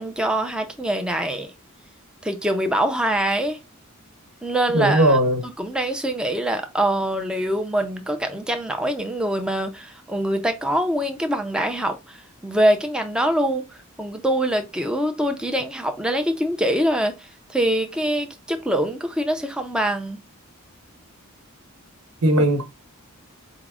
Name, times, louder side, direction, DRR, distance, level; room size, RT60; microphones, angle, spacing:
voice 1, 0.0-1.5 2.2-3.6 4.4-12.2 12.4-13.6 14.0-20.2, right 1 dB, 5° right, 0.4 m, -24 dB
voice 2, 4.7-5.4 22.2-22.6, right 1 dB, 80° right, 1.1 m, -18 dB
4.5 x 2.0 x 3.6 m
head